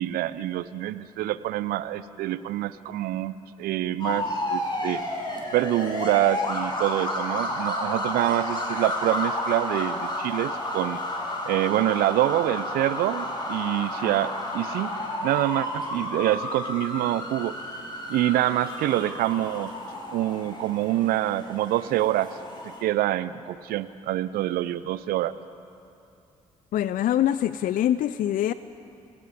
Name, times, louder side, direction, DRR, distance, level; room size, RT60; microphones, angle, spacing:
voice 1, 0.0-5.0 5.5-11.0 11.5-14.9 15.2-17.5 18.1-19.7 20.1-22.3 22.8-25.3, right 14 dB, 65° right, 16 dB, 0.6 m, -26 dB
sound 1, 4.0-22.8, left 1 dB, 25° left, 5.3 m, -32 dB
voice 2, 26.7-28.5, left 11 dB, 55° left, 15 dB, 0.5 m, -24 dB
28.5 x 17.5 x 5.1 m, 2.6 s
figure-of-eight pair, 40°, 17 cm